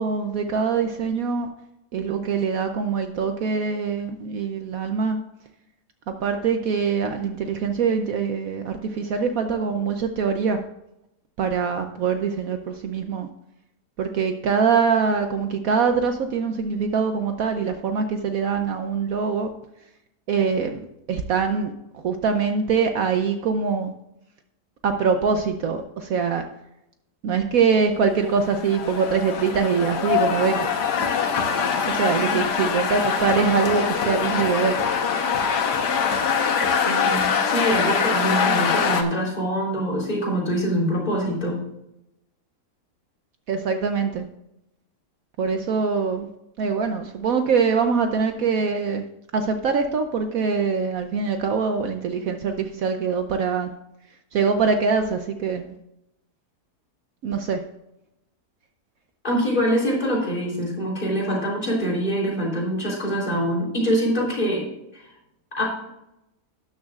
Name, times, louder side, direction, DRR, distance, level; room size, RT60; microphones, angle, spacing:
voice 1, 0.0-1.5 1.9-5.2 6.1-10.6 11.4-13.3 14.0-19.5 20.3-20.8 21.1-23.9 24.8-26.4 27.2-30.8 31.9-34.8 43.5-44.2 45.4-46.3 46.6-49.0 49.3-53.7 54.3-55.7 57.2-57.6, right 5 dB, 65° right, 6 dB, 1.0 m, -23 dB
sound 1, 28.3-39.0, left 6 dB, 85° left, 1.6 m, -23 dB
voice 2, 32.2-32.5 36.8-41.6 59.2-64.7 64.9-65.1 65.5-65.6, equal, 30° left, -4 dB, 3.7 m, -24 dB
12.5 x 10.5 x 2.4 m, 0.86 s
omnidirectional pair, 1.7 m